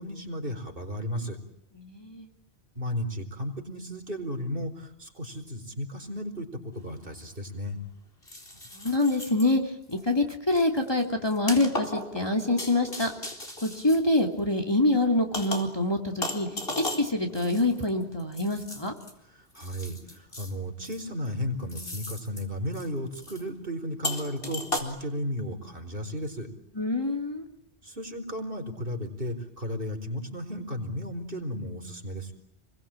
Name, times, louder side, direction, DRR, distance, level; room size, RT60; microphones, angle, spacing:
voice 1, 0.0-1.4 2.7-7.8 19.3-26.5 27.8-32.3, equal, 50° right, 5 dB, 4.7 m, -34 dB
voice 2, 1.7-2.3 8.7-13.1 13.6-16.5 16.8-18.9 26.7-27.5, left 2 dB, 20° left, 2 dB, 3.0 m, -26 dB
sound 1, 6.7-6.8 8.2-9.5 9.9-10.1 10.5-14.7 15.3-15.8 16.2-19.1 19.6-20.5 20.8-21.3 21.7-22.4 22.7-22.9 23.2-23.4 24.0-24.8, left 1 dB, 55° left, 4.3 m, -36 dB
30.0 x 22.5 x 9.0 m, 0.79 s
omnidirectional pair, 1.2 m